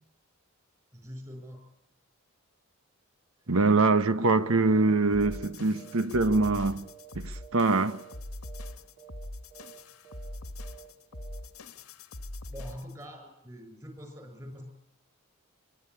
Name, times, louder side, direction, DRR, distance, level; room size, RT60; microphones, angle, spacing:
voice 1, 0.9-1.7 12.5-14.7, equal, 20° right, 7.0 m, -44 dB
voice 2, 3.5-6.9 7.1-8.0, right 3 dB, 70° right, 1.3 m, -24 dB
sound 1, 4.7-4.9 5.2-5.5 5.7-7.1 7.4-7.6 7.9-8.2 8.4-8.7 9.0-9.2 9.5-9.8 10.0-10.3 10.6-10.9 11.1-11.4, right 10 dB, 50° right, 4.1 m, -51 dB
sound 2, 5.1-13.0, left 1 dB, 80° left, 1.5 m, -42 dB
25.0 x 23.5 x 9.7 m
head